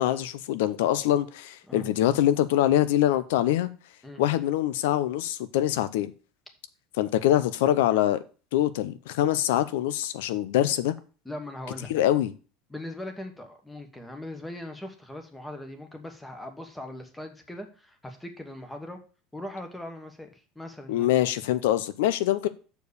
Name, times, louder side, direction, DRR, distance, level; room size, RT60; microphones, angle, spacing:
voice 1, 0.0-3.7 4.2-6.1 7.0-8.2 8.5-10.9 11.9-12.3 20.9-22.5, left 12 dB, 85° left, 0.6 m, -24 dB
voice 2, 11.2-12.0 12.7-19.0 19.3-21.1, left 1 dB, 5° left, 1.2 m, -40 dB
6.8 x 4.6 x 6.7 m
cardioid pair, 160°, 0 cm